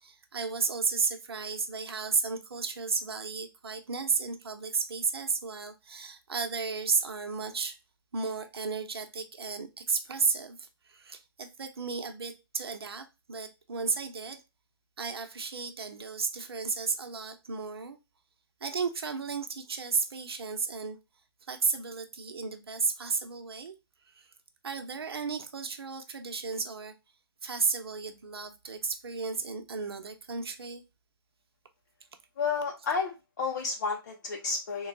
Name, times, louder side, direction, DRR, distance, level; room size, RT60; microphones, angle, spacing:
voice 1, 0.0-7.8 8.1-14.4 15.0-18.0 18.6-21.0 21.5-23.7 24.1-24.3 24.6-26.9 27.4-30.8, right 5 dB, 75° right, 0.9 m, -33 dB
voice 2, 32.4-34.9, left 5 dB, 50° left, 0.7 m, -31 dB
3.8 x 2.3 x 3.9 m
hypercardioid pair, 150°, 13 cm